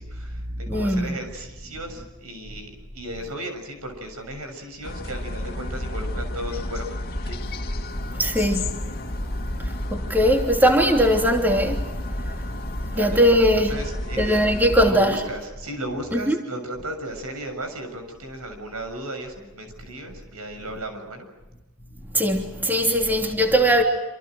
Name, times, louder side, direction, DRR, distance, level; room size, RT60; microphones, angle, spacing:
voice 1, 0.0-6.8 7.2-7.4 12.9-13.3 13.7-14.4 14.8-21.3, right 1 dB, 75° right, 7.1 m, -35 dB
voice 2, 0.7-1.2 8.0-13.8 14.2-15.2 16.1-16.4 22.1-23.8, equal, 10° right, 3.1 m, -21 dB
sound 1, 4.8-14.9, left 1 dB, 45° left, 2.4 m, -31 dB
27.5 x 27.5 x 6.4 m
head